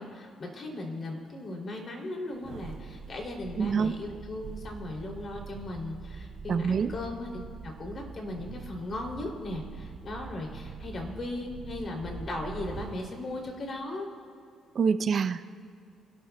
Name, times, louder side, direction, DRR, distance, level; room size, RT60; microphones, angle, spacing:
voice 1, 0.0-7.3 7.6-14.1, left 2 dB, 45° left, 1 dB, 3.0 m, -37 dB
sound 1, 2.3-13.0 13.4-13.6, right 4 dB, 70° right, 2.6 m, -44 dB
voice 2, 3.6-4.0 6.5-6.9 14.8-15.5, right 6 dB, 50° right, 10 dB, 0.5 m, -26 dB
28.0 x 12.5 x 2.3 m, 2.4 s
cardioid pair, 90°, 0 cm